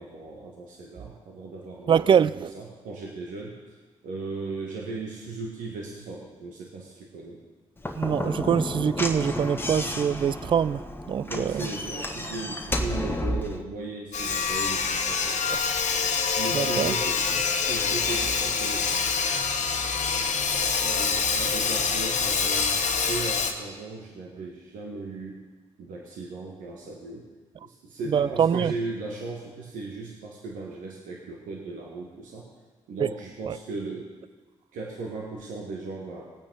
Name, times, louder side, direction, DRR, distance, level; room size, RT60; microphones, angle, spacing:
voice 1, 0.0-3.8 4.0-7.4 11.2-15.6 16.4-18.9 20.8-25.4 25.8-27.3 27.6-32.5 32.9-34.1 34.7-36.3, right 3 dB, 75° right, 1.6 m, -37 dB
voice 2, 1.9-2.5 8.0-11.6 16.5-16.9 28.1-28.7 33.5-33.6, right 8 dB, 40° right, 0.3 m, -24 dB
Slam / Knock, 7.8-13.6, left 1 dB, 15° left, 1.4 m, -31 dB
Sawing, 14.1-23.5, left 5 dB, 65° left, 1.3 m, -26 dB
19.0 x 8.7 x 4.0 m
hypercardioid pair, 40°, 14 cm